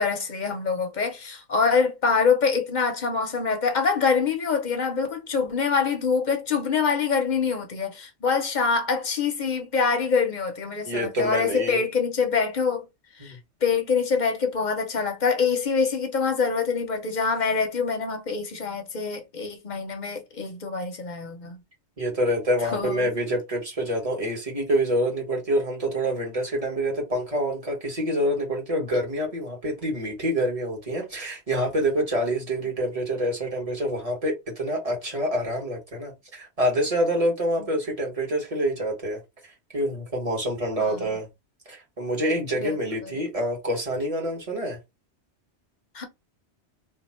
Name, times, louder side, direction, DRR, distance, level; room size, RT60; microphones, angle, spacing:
voice 1, 0.0-12.8 13.2-21.6 22.6-23.1 40.8-41.0 42.6-42.7 45.9-46.0, left 5 dB, 45° left, 0.7 m, -25 dB
voice 2, 10.8-11.8 13.2-13.4 22.0-39.2 39.7-41.3 41.7-44.8, equal, 30° right, 1.3 m, -26 dB
2.8 x 2.4 x 4.2 m
omnidirectional pair, 1.2 m